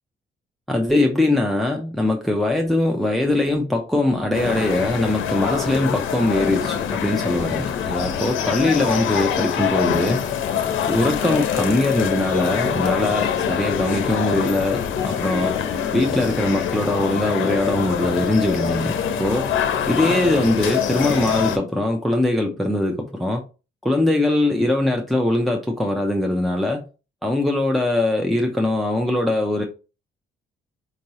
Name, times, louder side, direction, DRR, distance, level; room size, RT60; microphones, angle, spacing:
voice 1, 0.7-10.2 10.8-15.6 15.9-18.9 19.2-19.5 19.9-23.4 23.8-26.8 27.2-29.6, left 1 dB, ahead, 0.6 m, -21 dB
sound 1, 4.3-21.6, left 8 dB, 80° left, 0.7 m, -24 dB
4.6 x 2.6 x 3.0 m
cardioid pair, 90°, 20 cm